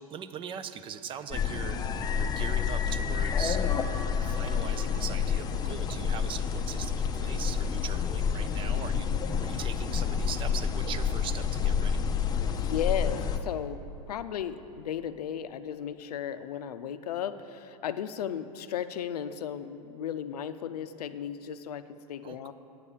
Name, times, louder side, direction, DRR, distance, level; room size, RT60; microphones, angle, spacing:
voice 1, 0.1-1.8 2.2-3.6 4.2-12.0 22.2-22.5, right 8 dB, 25° right, 12 dB, 0.5 m, -40 dB
sound 1, 1.3-13.4, left 7 dB, 20° left, 0.6 m, -29 dB
voice 2, 12.4-13.8 14.1-22.5, left 9 dB, 80° left, 11 dB, 0.5 m, -35 dB
9.5 x 6.8 x 7.2 m, 2.7 s
hypercardioid pair, 115°, 20 cm